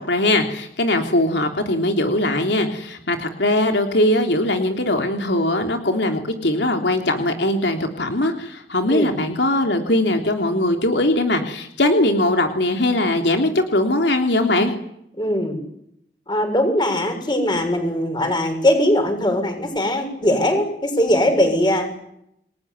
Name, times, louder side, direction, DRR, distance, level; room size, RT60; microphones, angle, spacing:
voice 1, 0.0-14.7, left 1 dB, 85° left, 4 dB, 3.2 m, -20 dB
voice 2, 15.2-15.6 16.3-21.9, left 1 dB, 25° left, 5 dB, 7.0 m, -20 dB
29.5 x 20.5 x 9.7 m, 0.76 s
head